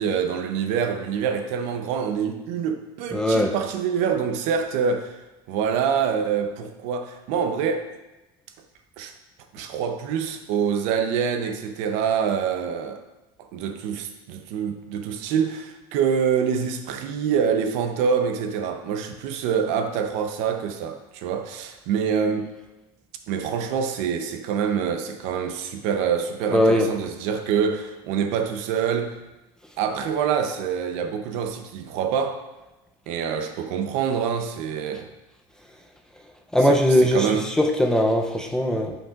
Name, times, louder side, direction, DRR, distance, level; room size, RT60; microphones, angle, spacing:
voice 1, 0.0-5.2 5.5-7.9 9.0-9.1 9.5-13.0 13.5-22.5 23.3-29.2 29.8-32.4 33.1-35.1 36.7-37.5, right 7 dB, 60° right, 7 dB, 0.7 m, -26 dB
voice 2, 3.1-3.5 26.5-26.9 36.5-38.9, equal, 5° left, 2 dB, 0.5 m, -20 dB
8.6 x 5.4 x 2.4 m, 1.0 s
supercardioid pair, 135°, 13 cm